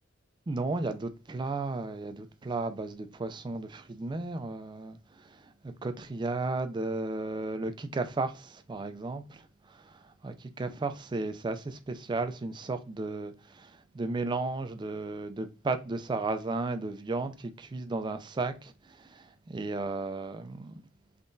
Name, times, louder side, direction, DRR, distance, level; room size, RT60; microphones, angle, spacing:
voice 1, 0.5-5.0 5.6-9.4 9.8-9.9 10.2-20.8, right 3 dB, 25° right, 0.3 m, -34 dB
3.6 x 3.3 x 2.6 m
head